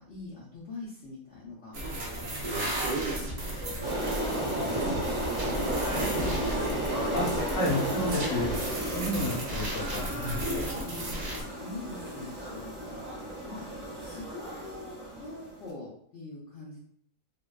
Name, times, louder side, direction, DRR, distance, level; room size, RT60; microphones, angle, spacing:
voice 1, 0.0-1.9 2.6-7.0 9.3-9.7 10.8-11.2 11.6-13.1 13.5-13.6 14.0-16.8, left 2 dB, 65° left, -6 dB, 0.7 m, -44 dB
sound 1, 1.7-11.4, right 1 dB, 65° right, 0.4 m, -33 dB
sound 2, 3.8-15.6, right 1 dB, 10° right, 0.7 m, -34 dB
voice 2, 7.1-8.5 8.9-10.5, left 1 dB, 30° left, -6 dB, 0.7 m, -31 dB
2.6 x 2.2 x 2.2 m, 0.64 s
omnidirectional pair, 1.6 m